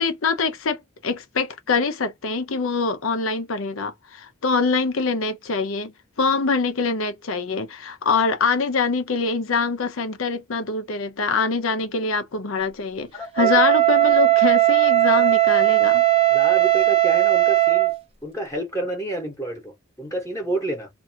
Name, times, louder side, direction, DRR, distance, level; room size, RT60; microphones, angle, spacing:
voice 1, 0.0-13.1 13.4-16.0, left 4 dB, 80° left, 0.6 m, -24 dB
voice 2, 13.1-13.5 15.2-15.3 16.3-17.9 18.2-20.9, right 1 dB, 15° left, 0.9 m, -29 dB
Wind instrument woodwind instrument, 13.4-18.0, right 16 dB, 30° right, 0.4 m, -17 dB
2.6 x 2.4 x 2.7 m
head